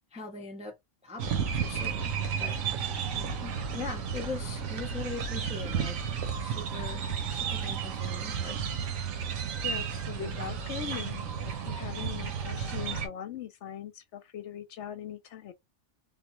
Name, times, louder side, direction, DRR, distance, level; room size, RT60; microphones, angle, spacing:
voice 1, 0.1-0.8 1.0-2.6 3.1-6.0 6.4-8.6, left 4 dB, 10° right, 0.3 m, -41 dB
sound 1, 1.2-13.1, right 7 dB, 80° right, 1.2 m, -33 dB
voice 2, 9.6-15.5, left 9 dB, 70° left, 0.8 m, -40 dB
3.5 x 2.0 x 3.0 m
omnidirectional pair, 1.4 m